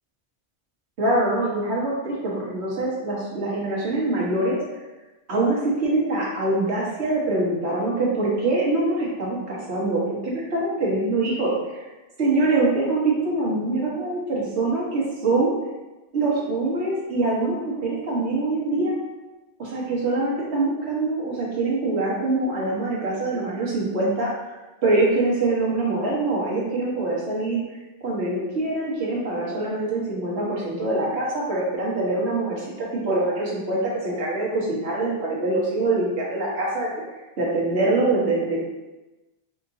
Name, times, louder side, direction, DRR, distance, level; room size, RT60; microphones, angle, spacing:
voice 1, 1.0-4.6 5.3-11.8 12.2-15.5 16.1-19.0 19.6-24.3 24.8-27.6 28.0-36.9 37.4-38.6, right 2 dB, 90° right, -5 dB, 1.4 m, -24 dB
3.8 x 3.6 x 2.6 m, 1.1 s
omnidirectional pair, 1.1 m